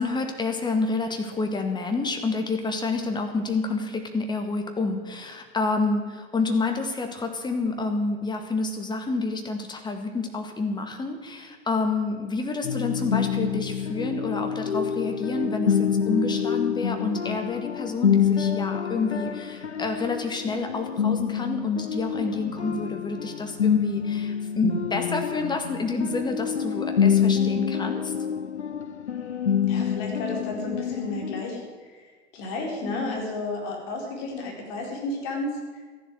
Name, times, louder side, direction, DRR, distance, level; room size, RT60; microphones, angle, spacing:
voice 1, 0.0-28.1 32.8-33.2, left 3 dB, 15° left, 4 dB, 1.9 m, -28 dB
sound 1, 12.6-31.4, left 7 dB, 85° left, 0.7 m, -27 dB
voice 2, 29.6-35.8, left 2 dB, 45° left, 1 dB, 4.6 m, -33 dB
14.0 x 11.5 x 8.0 m, 1.5 s
figure-of-eight pair, 100°, 33 cm